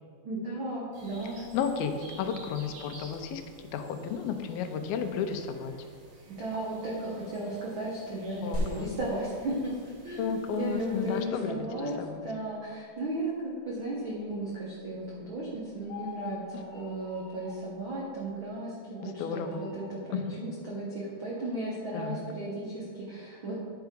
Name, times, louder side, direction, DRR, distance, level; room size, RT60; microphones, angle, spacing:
voice 1, 0.2-1.4 6.3-9.7 10.0-11.9 12.2-23.5, right 1 dB, 90° right, -5 dB, 1.1 m, -35 dB
sound 1, 0.9-11.2, right 1 dB, 65° right, 2.7 m, -53 dB
voice 2, 1.5-3.4 3.7-5.7 8.4-8.9 10.2-12.2 16.5-16.6 19.0-19.6 20.1-20.5 21.9-22.2, left 7 dB, 85° left, 7 dB, 2.6 m, -33 dB
sound 2, 8.5-18.5, equal, 45° right, 0.6 m, -43 dB
sound 3, 15.8-17.7 19.0-20.0, left 7 dB, 55° left, 2.8 m, -45 dB
10.5 x 4.7 x 5.2 m, 2.1 s
omnidirectional pair, 4.2 m